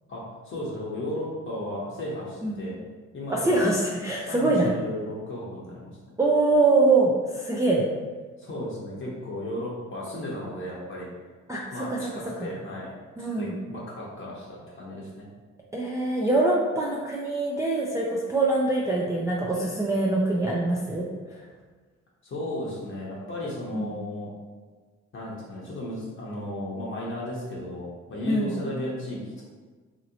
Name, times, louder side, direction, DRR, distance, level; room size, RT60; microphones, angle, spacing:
voice 1, 0.1-2.8 3.1-3.6 4.2-5.9 8.4-11.1 11.7-15.3 22.2-24.3 25.1-29.4, left 1 dB, 45° left, -5 dB, 0.8 m, -35 dB
voice 2, 3.3-4.7 6.2-7.8 11.5-12.0 12.4-12.5 13.2-13.5 15.7-21.1 21.3-21.4 23.7-23.9 28.2-28.5, right 2 dB, 10° right, -4 dB, 0.3 m, -24 dB
2.9 x 2.8 x 2.6 m, 1.4 s
cardioid pair, 90°, 30 cm